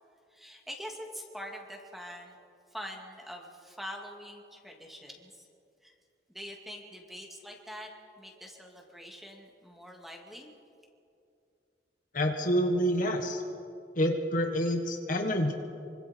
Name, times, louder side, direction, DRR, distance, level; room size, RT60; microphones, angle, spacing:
voice 1, 0.3-2.4 2.7-5.5 5.8-5.9 6.3-7.9 8.2-10.5, equal, ahead, 0 dB, 2.5 m, -44 dB
voice 2, 12.1-13.4 13.9-15.5, equal, 50° left, 3 dB, 1.6 m, -27 dB
25.5 x 25.0 x 4.6 m, 2.5 s
head